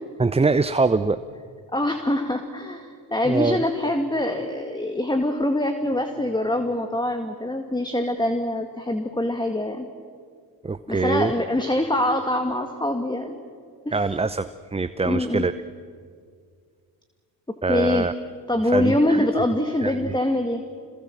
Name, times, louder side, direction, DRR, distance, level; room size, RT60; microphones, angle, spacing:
voice 1, 0.2-1.2 3.3-3.6 10.6-11.3 13.9-15.5 17.6-18.1 18.6-19.3 19.8-20.0, right 3 dB, 10° right, 12 dB, 0.7 m, -23 dB
voice 2, 1.7-9.9 10.9-13.4 13.9-14.0 15.0-15.5 17.7-18.1 18.5-20.6, left 1 dB, 10° left, 6 dB, 2.0 m, -24 dB
27.0 x 21.5 x 7.5 m, 2.1 s
supercardioid pair, 60°, 49 cm